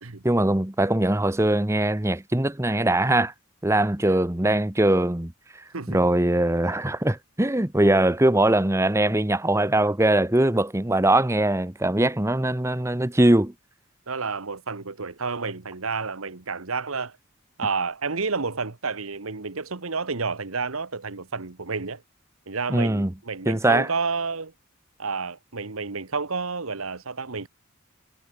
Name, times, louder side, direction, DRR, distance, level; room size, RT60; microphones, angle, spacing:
voice 1, 0.2-3.3 3.6-5.3 5.9-13.5 22.7-23.1 23.5-23.9, right 1 dB, 15° right, 1.0 m, -21 dB
voice 2, 14.1-17.2 17.6-22.0 22.5-24.5 25.0-27.5, right 4 dB, 85° right, 1.5 m, -30 dB
head